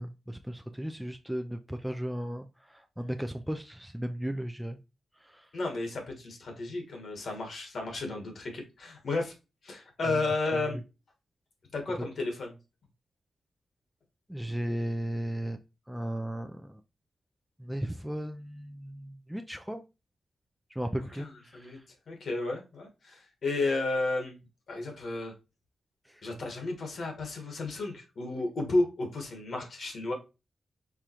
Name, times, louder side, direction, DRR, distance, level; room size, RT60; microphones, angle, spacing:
voice 1, 0.0-2.5 2.7-4.8 5.3-5.4 10.5-10.6 14.3-15.6 15.9-16.8 17.6-19.8 20.8-21.7, right 1 dB, 5° right, 6 dB, 0.3 m, -35 dB
voice 2, 5.5-9.3 9.6-10.8 11.7-12.5 21.2-21.8 22.1-24.4 24.7-25.3 26.2-30.1, left 2 dB, 65° left, 3 dB, 1.5 m, -32 dB
4.8 x 3.7 x 2.9 m, 0.28 s
wide cardioid pair, 105°, 0 cm